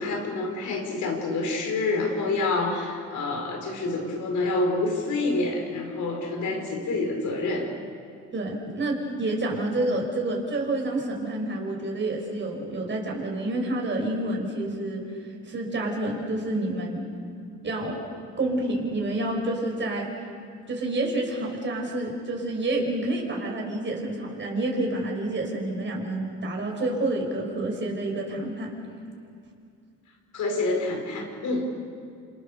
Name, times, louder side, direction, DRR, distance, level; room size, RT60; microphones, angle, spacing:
voice 1, 0.0-7.7 30.3-31.7, left 2 dB, 75° left, 2 dB, 5.3 m, -27 dB
voice 2, 8.3-15.1 15.4-17.1 17.6-18.0 18.4-20.1 20.7-28.7, right 2 dB, 40° right, 0 dB, 5.4 m, -28 dB
27.5 x 27.0 x 6.9 m, 2.3 s
cardioid pair, 90°, 30 cm